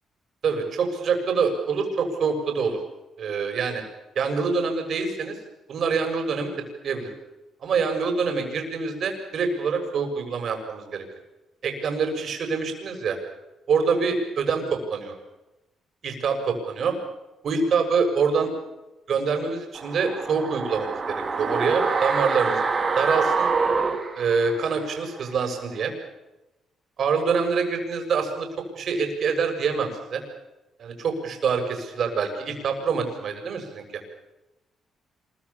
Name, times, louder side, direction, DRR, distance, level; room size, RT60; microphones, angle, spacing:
voice 1, 0.4-2.8 3.2-3.8 4.2-5.4 5.7-6.5 6.8-7.1 7.6-11.0 11.6-13.2 13.7-15.1 16.0-16.9 17.4-18.5 19.1-22.6 23.0-23.5 24.2-25.9 27.0-28.5 28.8-30.2 30.8-33.8, right 5 dB, 60° right, 4 dB, 7.0 m, -25 dB
sound 1, 19.7-24.9 25.2-25.3, right 4 dB, 35° right, 4.0 m, -26 dB
27.0 x 23.0 x 7.3 m, 1.0 s
cardioid pair, 90°, 0 cm